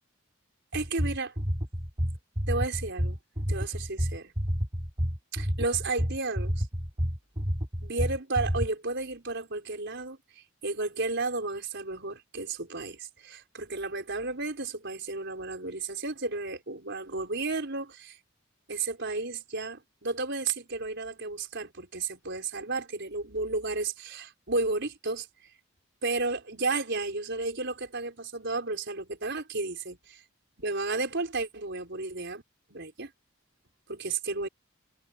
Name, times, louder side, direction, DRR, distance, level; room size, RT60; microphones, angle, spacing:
sound 1, 0.7-8.7, equal, 30° right, 6.7 m, -29 dB
voice 1, 0.7-1.3 2.5-3.2 3.5-4.3 5.3-6.7 7.8-18.2 18.7-25.3 26.0-30.2 30.6-32.4 32.7-33.1 34.0-34.5, right 3 dB, 60° right, 5.4 m, -33 dB
head